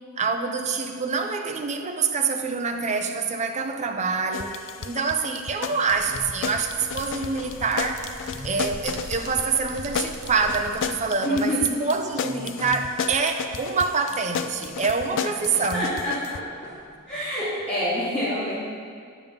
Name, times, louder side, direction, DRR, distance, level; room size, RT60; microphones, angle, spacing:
voice 1, 0.2-8.1 8.4-15.9, right 4 dB, 30° right, 5 dB, 0.5 m, -26 dB
sound 1, 4.3-16.4, left 6 dB, 55° left, 0.3 m, -33 dB
sound 2, 5.6-17.3, equal, 5° left, 1.5 m, -46 dB
sound 3, 5.9-11.1, right 2 dB, 80° right, 0.9 m, -42 dB
voice 2, 11.2-11.6 15.7-16.7 17.1-18.5, left 1 dB, 30° left, -13 dB, 2.4 m, -27 dB
10.5 x 3.6 x 7.0 m, 2.1 s
head